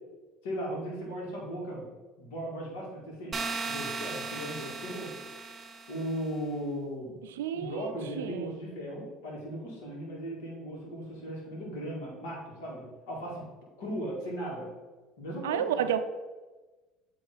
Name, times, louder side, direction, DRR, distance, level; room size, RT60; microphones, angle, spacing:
voice 1, 0.4-1.8 2.2-5.1 5.9-7.2 7.5-13.4 13.8-14.7 15.2-15.7, equal, 80° left, -3 dB, 1.9 m, -37 dB
sound 1, 3.3-6.2, right 4 dB, 30° right, 0.7 m, -37 dB
voice 2, 7.4-8.6 15.4-16.0, right 9 dB, 90° right, 10 dB, 0.4 m, -30 dB
8.1 x 3.1 x 3.9 m, 1.2 s
hypercardioid pair, 80°, 0 cm